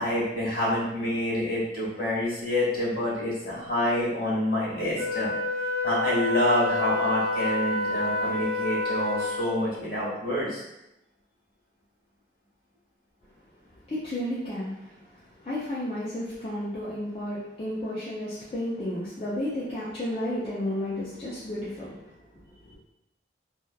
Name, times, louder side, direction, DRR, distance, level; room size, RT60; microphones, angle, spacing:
voice 1, 0.0-5.3 5.8-10.6, left 1 dB, 55° left, -6 dB, 1.3 m, -27 dB
Wind instrument woodwind instrument, 5.0-9.6, left 2 dB, 70° left, 1.2 m, -28 dB
voice 2, 13.7-22.8, left 1 dB, 30° left, -9 dB, 0.4 m, -33 dB
2.8 x 2.2 x 2.2 m, 0.87 s
head